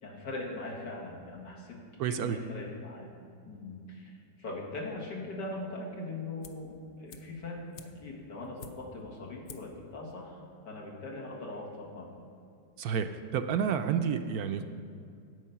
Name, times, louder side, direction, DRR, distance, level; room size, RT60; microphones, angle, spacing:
voice 1, 0.0-3.1 3.5-12.2, left 2 dB, 85° left, -2 dB, 2.5 m, -41 dB
voice 2, 2.0-2.4 12.8-14.7, right 7 dB, 70° right, 8 dB, 1.0 m, -30 dB
sound 1, 6.4-6.7 7.1-9.1 9.4-9.8 10.1-10.2, left 5 dB, 60° left, 1.0 m, -50 dB
12.5 x 8.4 x 5.7 m, 2.4 s
omnidirectional pair, 1.8 m